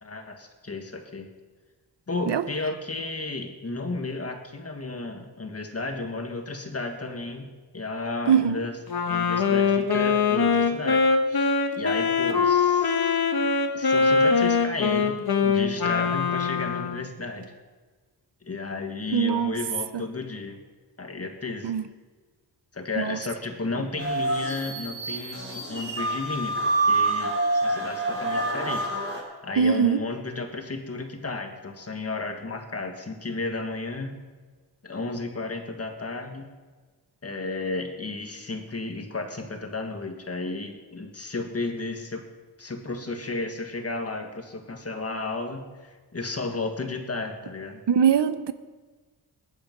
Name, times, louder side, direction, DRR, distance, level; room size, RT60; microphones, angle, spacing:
voice 1, 0.0-1.3 2.1-7.5 7.7-8.8 9.1-11.0 11.3-13.2 13.7-17.5 18.4-20.6 21.0-21.8 22.7-34.2 34.8-36.5 37.2-42.2 42.6-47.8, left 3 dB, 35° left, 4 dB, 1.8 m, -33 dB
Wind instrument woodwind instrument, 8.9-17.1, left 5 dB, 60° left, 1.5 m, -23 dB
voice 2, 19.1-19.5 21.6-21.8 29.6-30.0 47.9-48.5, right 7 dB, 80° right, 12 dB, 0.9 m, -21 dB
sound 1, 24.0-29.2, right 2 dB, 30° right, 4.0 m, -27 dB
20.5 x 10.5 x 5.3 m, 1.4 s
wide cardioid pair, 145°, 41 cm